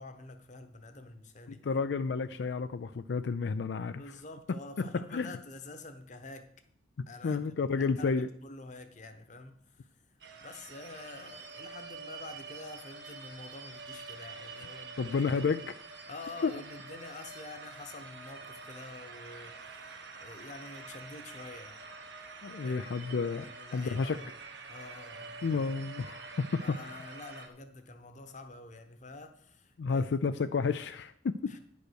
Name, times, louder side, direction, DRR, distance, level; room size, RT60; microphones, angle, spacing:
voice 1, 0.0-1.6 4.0-6.5 7.1-15.4 16.1-21.8 22.6-22.8 23.4-24.3 24.7-25.5 26.6-30.1 31.4-31.6, left 2 dB, 45° left, 8 dB, 1.1 m, -48 dB
voice 2, 1.5-4.0 4.8-4.9 5.1-5.3 7.2-8.3 15.0-15.8 16.4-16.5 22.4-23.5 23.7-24.2 25.4-26.8 29.8-31.5, left 4 dB, 80° left, 10 dB, 0.4 m, -31 dB
sound 1, 10.2-27.5, right 4 dB, 75° right, 1.2 m, -47 dB
10.0 x 5.4 x 6.4 m, 0.65 s
head